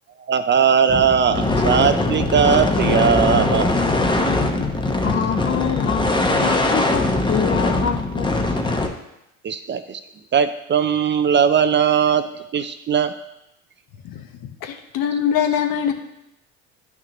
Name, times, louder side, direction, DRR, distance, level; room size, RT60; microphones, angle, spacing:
voice 1, 0.3-3.7 9.4-10.0 10.3-13.1, right 7 dB, 30° right, 10 dB, 0.5 m, -19 dB
sound 1, 0.9-8.9, left 2 dB, 10° left, 0.9 m, -21 dB
voice 2, 5.0-6.1 6.4-8.3, left 9 dB, 30° left, 7 dB, 0.4 m, -25 dB
voice 3, 14.6-15.9, left 8 dB, 60° left, 6 dB, 1.1 m, -22 dB
10.5 x 5.9 x 3.0 m, 0.88 s
supercardioid pair, 85°, 38 cm